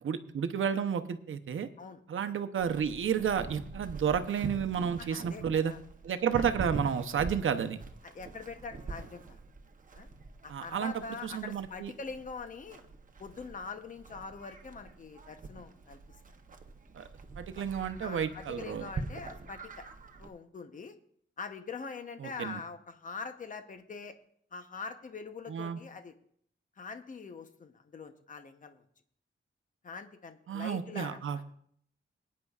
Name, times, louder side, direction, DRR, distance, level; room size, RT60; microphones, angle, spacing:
voice 1, 0.0-1.7 2.1-5.7 6.0-7.8 10.5-10.9 11.2-11.9 16.9-17.1 17.4-18.9 22.2-22.6 25.5-25.8 30.5-31.4, right 7 dB, 80° right, 9 dB, 0.8 m, -31 dB
Livestock farm animals working animals, 2.6-20.3, right 3 dB, 40° right, 0.9 m, -44 dB
voice 2, 5.0-5.8 6.3-6.4 8.0-9.4 9.9-10.1 10.4-12.9 13.2-16.0 17.6-17.7 18.0-19.8 20.2-20.9 21.4-24.1 24.5-26.1 26.8-28.8 29.8-31.4, left 5 dB, 40° left, 7 dB, 0.9 m, -43 dB
22.0 x 9.6 x 2.4 m, 0.65 s
wide cardioid pair, 175°, 20 cm